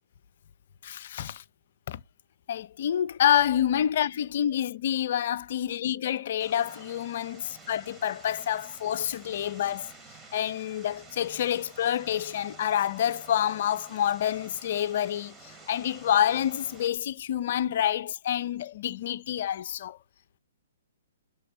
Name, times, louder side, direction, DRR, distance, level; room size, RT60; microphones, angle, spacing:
voice 1, 0.8-1.4 1.9-2.0 2.5-9.9 10.3-20.0, left 10 dB, 50° left, 0.5 m, -28 dB
Vehicle, 6.4-16.9, right 3 dB, 10° right, 1.5 m, -50 dB
6.5 x 3.3 x 4.6 m
figure-of-eight pair, 120°, 0 cm